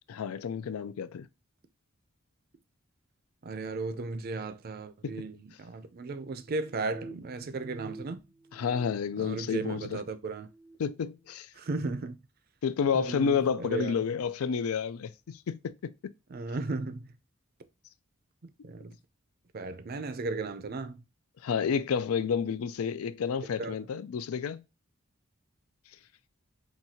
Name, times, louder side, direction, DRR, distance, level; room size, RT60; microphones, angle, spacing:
voice 1, 0.1-1.3 5.0-5.1 8.5-10.0 10.8-11.5 12.6-15.9 18.6-18.7 21.4-24.6, left 6 dB, 85° left, 0.4 m, -30 dB
voice 2, 3.4-8.2 9.2-10.5 11.5-12.2 12.9-13.9 16.3-17.1 18.4-18.9 19.5-21.0 23.6-23.8, right 3 dB, 45° right, 0.5 m, -35 dB
sound 1, 6.3-8.0 8.3-9.9 10.3-10.8, right 3 dB, 80° right, 0.7 m, -48 dB
5.8 x 2.7 x 2.7 m
head